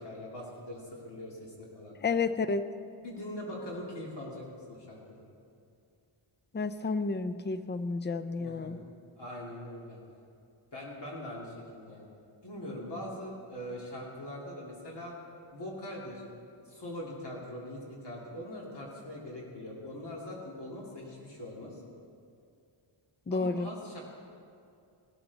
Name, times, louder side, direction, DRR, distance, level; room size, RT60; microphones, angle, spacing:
voice 1, 0.0-1.9 2.9-5.2 8.4-8.9 9.2-10.0 10.7-12.0 12.4-15.2 15.5-16.2 16.6-21.8 23.3-24.0, left 1 dB, 55° left, -4 dB, 2.6 m, -42 dB
voice 2, 2.0-2.6 6.5-8.8 23.3-23.7, left 4 dB, 25° left, 12 dB, 0.4 m, -31 dB
17.5 x 13.0 x 4.1 m, 2.5 s
wide cardioid pair, 180°, 50 cm